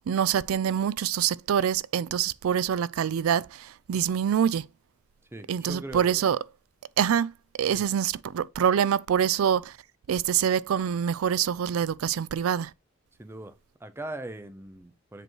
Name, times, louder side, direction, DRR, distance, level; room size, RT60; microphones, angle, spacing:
voice 1, 0.1-4.7 5.5-6.4 7.0-7.3 7.6-9.7 10.1-12.7, right 8 dB, 85° right, 0.4 m, -25 dB
voice 2, 5.3-6.3 7.7-7.9 13.2-15.2, right 1 dB, 10° right, 0.6 m, -40 dB
7.6 x 3.1 x 4.5 m
head